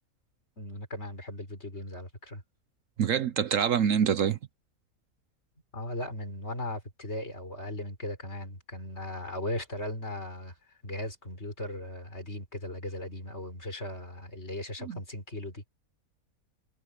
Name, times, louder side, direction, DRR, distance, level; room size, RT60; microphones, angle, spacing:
voice 1, 0.6-2.4 5.7-10.6 10.8-15.7, left 1 dB, 45° left, 5.6 m, -37 dB
voice 2, 3.0-4.4 14.9-15.0, right 8 dB, 65° right, 1.1 m, -25 dB
omnidirectional pair, 1.5 m